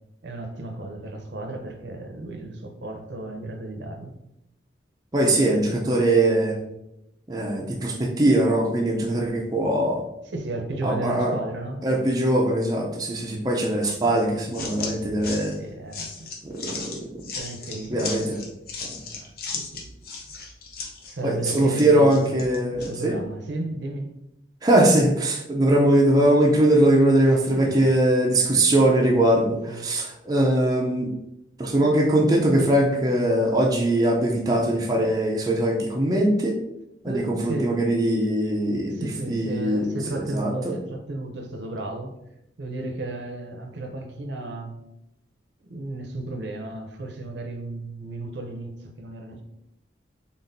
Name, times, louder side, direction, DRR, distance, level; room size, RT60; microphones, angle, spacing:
voice 1, 0.2-4.2 10.3-11.9 14.0-14.1 15.6-16.3 17.3-18.3 19.5-19.8 20.4-20.5 21.1-22.2 22.7-24.1 27.4-27.9 28.5-28.8 29.7-30.1 37.1-37.8 38.9-42.2 42.6-44.8 45.7-49.4, right 2 dB, 75° right, 0.6 m, -34 dB
voice 2, 5.1-6.6 7.3-10.0 10.8-11.3 11.8-15.6 16.4-17.2 17.9-18.4 18.8-18.9 21.2-23.2 24.6-31.1 31.6-36.6 37.0-40.7, right 1 dB, 20° right, 0.5 m, -21 dB
sound 1, 13.8-23.0, left 4 dB, 50° left, 0.7 m, -37 dB
4.2 x 3.6 x 2.6 m
head